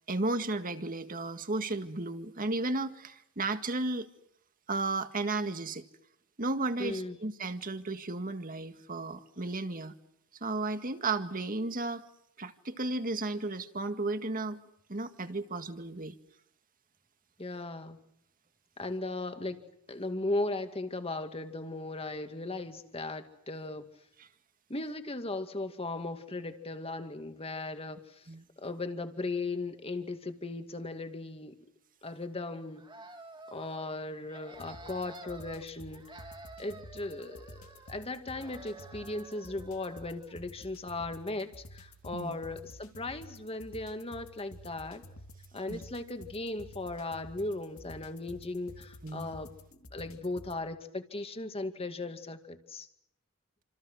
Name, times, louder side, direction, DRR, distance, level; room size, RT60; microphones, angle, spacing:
voice 1, 0.1-4.1 4.7-5.9 6.4-9.9 10.4-12.0 12.4-14.6 14.9-16.2 28.3-28.4 42.1-42.4 45.7-45.8 49.0-49.3, right 2 dB, 40° right, 9 dB, 1.9 m, -34 dB
voice 2, 6.8-7.2 17.4-18.0 18.8-19.6 19.9-23.9 24.7-28.3 28.6-31.6 32.0-32.8 33.5-36.3 36.6-45.0 45.5-52.9, left 2 dB, 30° left, 8 dB, 2.2 m, -37 dB
sound 1, 32.8-33.9 34.3-35.6 35.9-38.1 38.4-40.4, right 2 dB, 25° right, 2.6 m, -50 dB
sound 2, 34.5-50.6, equal, 85° left, 2.6 m, -51 dB
28.5 x 27.0 x 6.4 m, 0.76 s
head